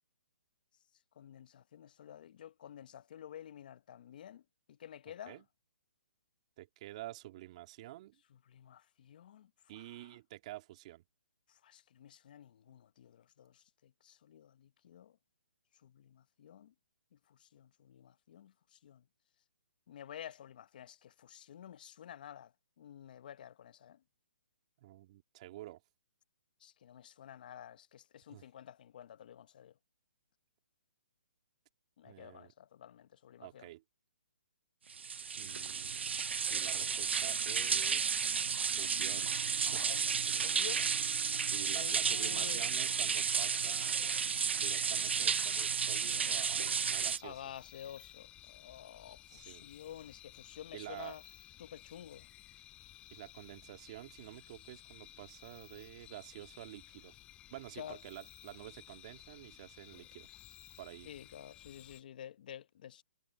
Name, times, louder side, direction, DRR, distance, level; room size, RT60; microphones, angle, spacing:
voice 1, 1.2-4.4 4.7-5.4 8.3-10.2 11.5-15.2 15.8-16.7 17.1-19.0 19.9-22.5 22.8-24.0 26.6-29.8 32.0-33.7 39.6-41.0 41.7-42.6 47.2-51.2 51.6-52.3 57.8-58.0 61.0-63.0, left 10 dB, 50° left, 1.0 m, -51 dB
voice 2, 6.6-8.2 9.7-11.0 24.8-25.8 28.3-28.4 32.0-32.5 33.4-33.8 35.3-36.1 36.5-38.2 38.7-39.8 41.4-44.0 44.6-47.4 49.3-49.7 50.7-51.2 53.1-57.1 57.5-60.3 60.8-61.1, right 16 dB, 35° right, 2.6 m, -49 dB
sound 1, 34.9-47.2, right 6 dB, 80° right, 0.8 m, -32 dB
sound 2, 47.0-62.0, left 13 dB, 15° left, 4.0 m, -56 dB
hypercardioid pair, 155°, 6 cm